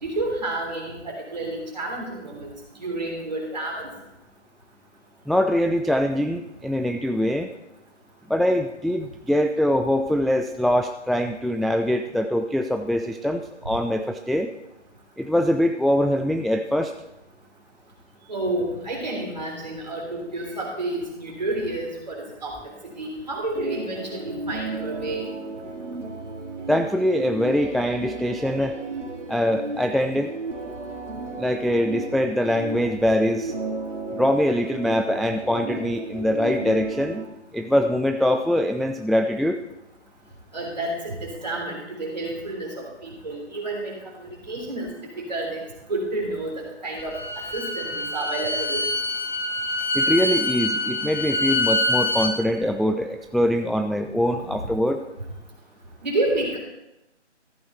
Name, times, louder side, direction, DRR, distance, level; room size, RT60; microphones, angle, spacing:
voice 1, 0.0-2.5 2.8-3.9 18.3-22.6 22.8-25.3 40.5-44.9 45.2-45.6 45.9-47.1 47.5-48.8 54.5-54.6 56.0-56.6, right 2 dB, 35° right, -1 dB, 3.3 m, -30 dB
voice 2, 5.3-7.5 8.3-14.5 15.2-16.9 26.7-28.8 29.3-30.3 31.4-33.5 34.1-37.3 37.5-39.6 49.9-55.0, equal, ahead, 5 dB, 0.3 m, -23 dB
sound 1, 23.5-37.3, right 3 dB, 85° right, 2.2 m, -34 dB
Bowed string instrument, 47.0-52.3, left 2 dB, 40° left, 1.2 m, -25 dB
14.5 x 8.3 x 4.5 m, 0.93 s
figure-of-eight pair, 180°, 36 cm